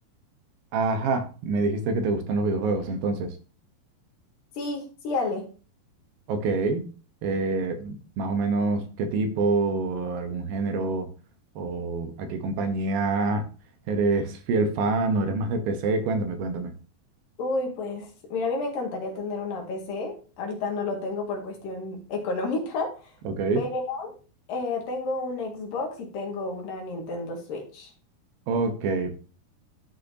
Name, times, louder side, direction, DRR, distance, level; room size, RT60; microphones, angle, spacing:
voice 1, 0.7-3.3 6.3-6.9 7.2-11.1 11.6-13.5 13.9-16.7 23.3-23.6 28.5-29.1, right 3 dB, 75° right, 7 dB, 2.7 m, -26 dB
voice 2, 4.6-5.5 17.4-23.1 23.5-24.2 24.5-27.9, left 3 dB, 65° left, 1 dB, 3.3 m, -31 dB
13.0 x 5.5 x 2.7 m, 0.36 s
omnidirectional pair, 4.5 m